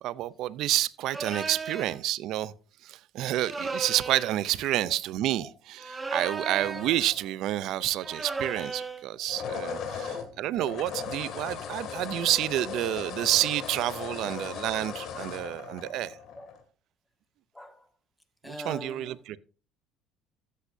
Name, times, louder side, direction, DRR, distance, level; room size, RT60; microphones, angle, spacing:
voice 1, 0.0-2.5 2.8-16.2 18.5-19.4, right 14 dB, 65° right, 0.5 m, -29 dB
sound 1, 1.1-2.0 3.4-4.4 5.8-7.0 8.0-9.0, right 4 dB, 15° right, 1.3 m, -35 dB
sound 2, 6.6-7.6 9.1-16.6, left 7 dB, 60° left, 2.2 m, -38 dB
voice 2, 8.0-8.4 9.9-10.4 14.3-14.6 16.3-16.6 17.5-17.9 18.4-19.4, equal, 5° left, 1.7 m, -45 dB
13.5 x 8.4 x 2.6 m
supercardioid pair, 90°, 0 cm